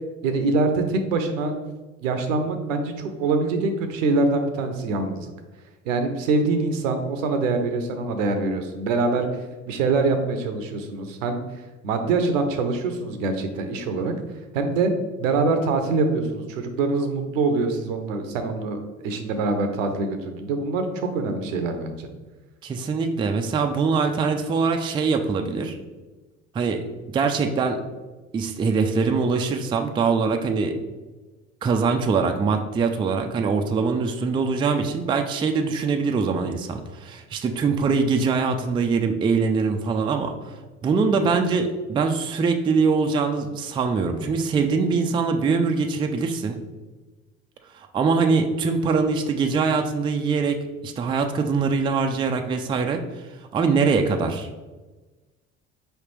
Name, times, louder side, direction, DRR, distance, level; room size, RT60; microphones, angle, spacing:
voice 1, 0.2-1.5 2.0-5.3 5.9-9.3 9.7-11.4 11.8-14.1 14.5-14.9 15.2-18.8 19.0-22.1, right 3 dB, 75° right, 7 dB, 0.7 m, -24 dB
voice 2, 22.6-25.8 26.5-26.8 27.1-27.8 28.3-30.7 31.6-40.5 40.8-46.6 47.7-50.6 50.8-53.0 53.5-54.5, right 4 dB, 15° right, 5 dB, 0.3 m, -23 dB
4.9 x 3.2 x 3.1 m, 1.2 s
hypercardioid pair, 65°, 39 cm